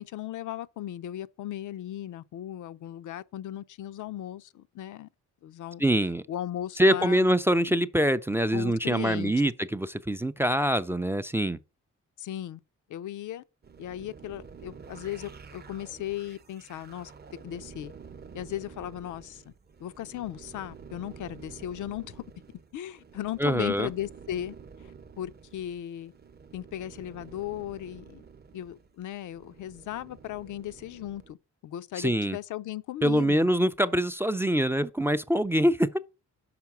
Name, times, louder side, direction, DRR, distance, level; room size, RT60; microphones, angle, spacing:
voice 1, 0.0-5.1 5.4-5.8 6.3-7.2 8.5-9.3 12.2-12.6 12.9-13.4 13.8-17.1 17.4-17.9 18.3-19.5 19.8-22.2 22.7-24.6 24.8-24.9 25.2-26.1 26.5-28.2 28.5-31.4 31.6-33.5, left 12 dB, 75° left, 0.5 m, -37 dB
voice 2, 5.8-6.2 6.8-11.6 23.4-23.9 31.9-32.4 33.0-36.0, equal, 10° right, 0.3 m, -24 dB
sound 1, 13.6-31.3, right 6 dB, 30° right, 0.7 m, -49 dB
5.9 x 4.6 x 5.8 m
cardioid pair, 75°, 31 cm